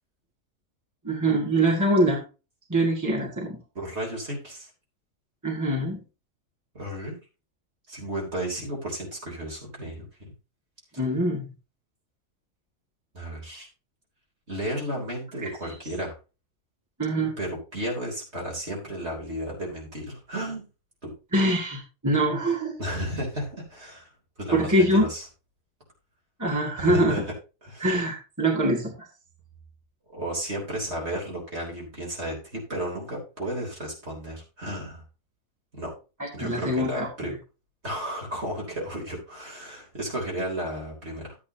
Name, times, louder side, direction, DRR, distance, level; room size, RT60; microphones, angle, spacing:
voice 1, 1.0-2.2 2.7-3.6 5.4-6.0 11.0-11.5 15.4-15.5 17.0-17.3 21.3-22.8 24.5-25.1 26.4-27.2 27.8-28.9 36.2-37.1, right 1 dB, 15° right, -2 dB, 2.1 m, -24 dB
voice 2, 3.8-4.7 6.7-7.2 7.9-10.3 13.1-13.7 14.5-16.1 17.4-20.6 21.0-21.1 22.8-24.1 24.4-25.2 26.8-27.2 27.6-27.9 30.1-35.0 35.7-35.9 36.3-37.3 37.8-41.4, right 1 dB, 50° right, -1 dB, 4.1 m, -33 dB
12.5 x 8.8 x 2.9 m, 0.31 s
omnidirectional pair, 1.4 m